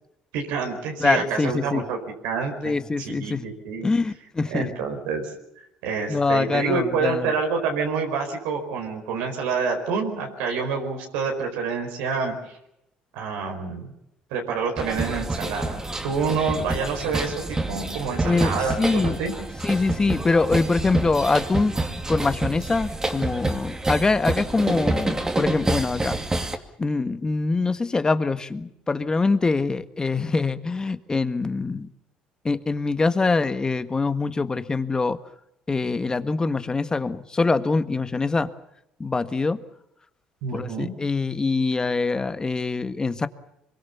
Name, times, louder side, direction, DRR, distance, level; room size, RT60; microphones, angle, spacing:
voice 1, 0.3-2.0 2.2-3.9 4.4-12.6 13.1-13.9 14.3-19.3 40.4-40.9, right 5 dB, 85° right, 2 dB, 4.6 m, -27 dB
voice 2, 1.0-1.8 2.6-3.5 3.8-4.7 6.1-7.3 18.2-19.2 19.6-21.7 22.1-26.2 26.8-31.9 32.4-35.2 35.7-38.5 39.0-39.6 40.5-43.3, left 3 dB, 25° left, 11 dB, 1.6 m, -24 dB
sound 1, 14.8-26.6, right 2 dB, 20° right, 2.5 m, -28 dB
24.5 x 22.5 x 7.1 m, 0.80 s
supercardioid pair, 75°, 3 cm